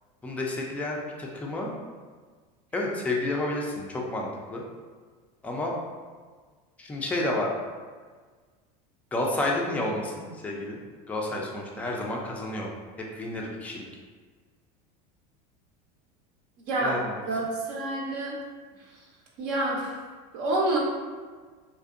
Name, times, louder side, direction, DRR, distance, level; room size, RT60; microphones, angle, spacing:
voice 1, 0.2-1.7 2.7-4.6 5.4-5.7 6.8-7.5 9.1-10.8 11.1-12.7 13.1-13.9 16.8-17.2, left 2 dB, 5° left, -2 dB, 0.3 m, -30 dB
voice 2, 17.3-18.3 19.4-19.9 20.3-20.8, right 2 dB, 60° right, -3 dB, 0.5 m, -27 dB
2.5 x 2.0 x 2.4 m, 1.5 s
supercardioid pair, 105°, 21 cm